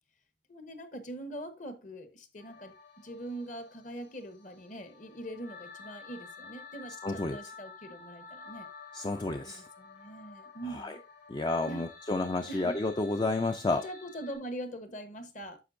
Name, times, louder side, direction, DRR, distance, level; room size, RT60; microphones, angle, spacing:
voice 1, 0.5-8.7 9.4-11.0 11.6-11.9 12.5-12.8 13.7-15.6, right 1 dB, 40° left, 1.0 m, -43 dB
sound 1, 2.4-14.4, left 5 dB, 70° left, 4.8 m, -51 dB
voice 2, 7.0-7.4 8.9-9.6 10.7-11.0 11.3-13.8, left 2 dB, 25° left, 0.4 m, -31 dB
9.6 x 6.9 x 2.5 m
head